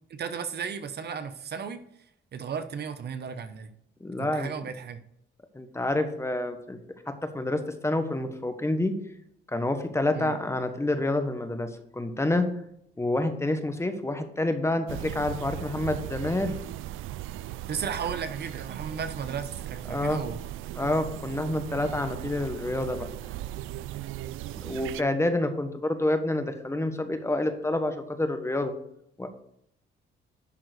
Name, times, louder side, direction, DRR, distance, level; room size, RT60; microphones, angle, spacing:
voice 1, 0.1-1.8 2.3-3.7 4.2-5.0 10.1-10.3 17.7-20.4, right 6 dB, 55° right, 10 dB, 0.9 m, -34 dB
voice 2, 4.0-4.5 5.5-6.8 7.2-8.9 9.5-12.5 13.0-16.5 19.9-20.2 20.8-23.1 24.6-28.7 29.2-29.3, left 1 dB, 15° left, 7 dB, 1.3 m, -28 dB
sound 1, 14.9-25.0, right 14 dB, 90° right, 0.4 m, -38 dB
11.0 x 3.8 x 6.6 m, 0.74 s
cardioid pair, 90°, 20 cm